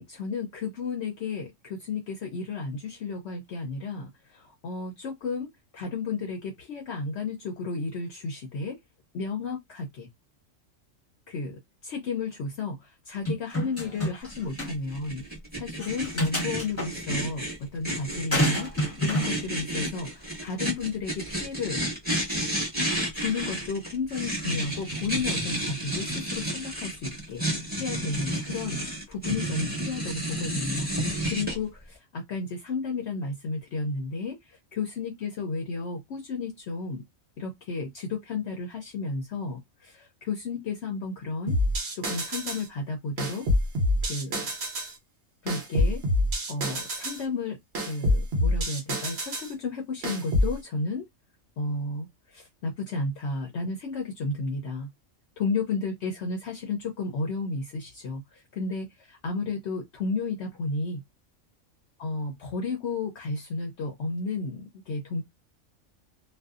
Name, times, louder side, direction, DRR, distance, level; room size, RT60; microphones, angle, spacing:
voice 1, 0.0-8.8 9.1-10.1 11.3-15.2 15.5-17.4 17.7-21.8 23.1-27.4 27.8-37.0 37.4-41.6 41.9-43.5 44.0-44.4 45.4-46.0 46.5-51.1 51.6-54.9 55.4-61.0 62.0-65.2, left 4 dB, 65° left, 0.8 m, -33 dB
sound 1, 13.3-14.3 14.6-14.7 15.8-16.9 18.3-19.3, equal, 10° left, 1.0 m, -28 dB
sound 2, 14.3-31.6, right 1 dB, 10° right, 1.2 m, -31 dB
sound 3, 41.5-42.7 43.2-44.9 45.5-47.2 47.7-49.5 50.0-50.5, left 1 dB, 55° right, 1.0 m, -26 dB
2.5 x 2.3 x 2.3 m
omnidirectional pair, 1.3 m